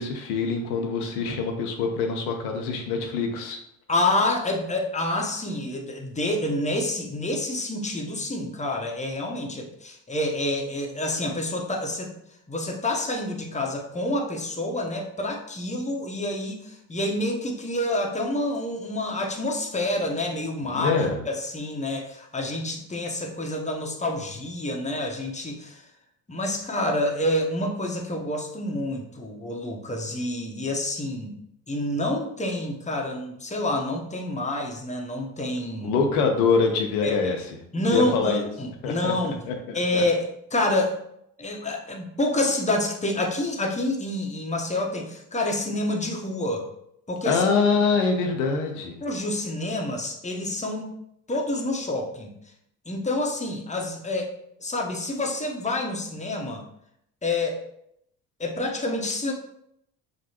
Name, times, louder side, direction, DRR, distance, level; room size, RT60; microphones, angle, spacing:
voice 1, 0.0-3.6 20.7-21.2 35.8-37.6 37.9-38.5 38.8-40.0 47.3-49.0, left 5 dB, 85° left, 3 dB, 0.8 m, -24 dB
voice 2, 3.9-12.1 12.5-21.0 21.3-25.8 26.3-31.4 31.7-35.9 37.0-37.1 37.7-39.4 39.7-41.0 41.4-46.7 47.1-47.4 49.0-50.9 51.3-52.3 52.9-54.3 54.6-56.6 57.2-57.6 58.4-59.3, left 1 dB, 15° left, 1 dB, 1.0 m, -28 dB
6.2 x 2.2 x 2.9 m, 0.75 s
hypercardioid pair, 55°, 43 cm